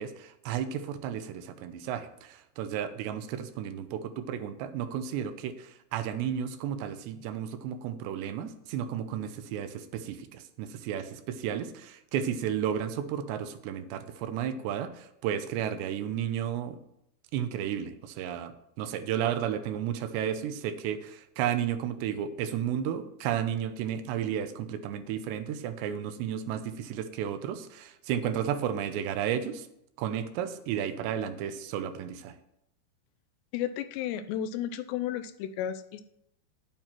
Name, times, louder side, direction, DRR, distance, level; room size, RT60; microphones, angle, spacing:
voice 1, 0.0-16.8 17.3-18.5 18.8-29.7 30.0-32.3, right 9 dB, 80° right, 9 dB, 3.0 m, -33 dB
voice 2, 33.5-36.0, left 10 dB, 80° left, 11 dB, 2.6 m, -33 dB
10.5 x 9.1 x 4.5 m, 0.79 s
omnidirectional pair, 5.0 m